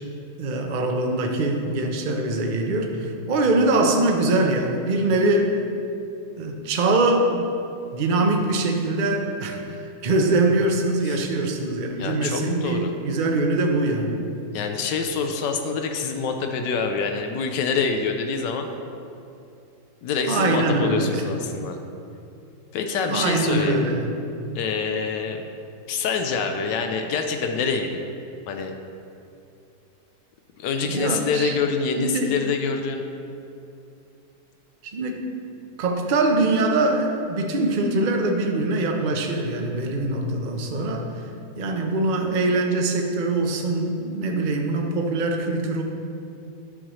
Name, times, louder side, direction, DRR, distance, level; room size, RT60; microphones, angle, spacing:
voice 1, 0.4-5.6 6.4-7.4 7.9-14.2 20.3-21.2 23.1-24.1 30.8-31.6 32.0-32.3 34.8-35.3 35.8-41.1 41.6-45.8, right 2 dB, 70° right, 3 dB, 0.4 m, -23 dB
voice 2, 12.0-12.9 14.5-18.7 20.0-21.8 22.7-23.8 24.5-25.4 25.9-28.1 28.5-28.7 30.6-33.0, left 5 dB, 90° left, 5 dB, 1.3 m, -26 dB
10.0 x 6.2 x 3.0 m, 2.6 s
omnidirectional pair, 1.8 m